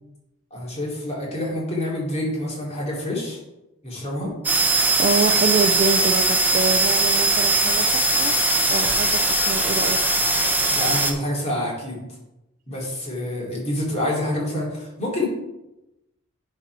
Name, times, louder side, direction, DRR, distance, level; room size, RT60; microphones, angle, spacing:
voice 1, 0.5-3.4 3.8-4.3 10.7-12.0 12.7-15.3, left 1 dB, 30° left, -4 dB, 2.9 m, -27 dB
sound 1, 4.4-11.1, right 2 dB, 10° right, 0.9 m, -20 dB
voice 2, 5.0-8.3 8.7-10.0, right 3 dB, 40° right, 9 dB, 0.4 m, -25 dB
10.5 x 4.4 x 4.8 m, 0.94 s
head